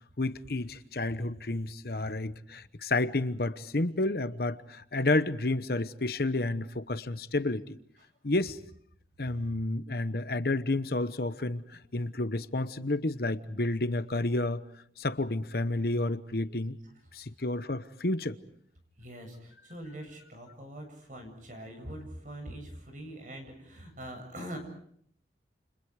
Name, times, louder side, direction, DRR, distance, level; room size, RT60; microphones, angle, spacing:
voice 1, 0.2-7.8 8.2-8.6 9.2-14.6 15.0-16.8 17.1-18.4, left 2 dB, 55° left, 1.0 m, -30 dB
voice 2, 19.0-24.6, right 1 dB, 45° right, 7.9 m, -43 dB
30.0 x 30.0 x 5.0 m
head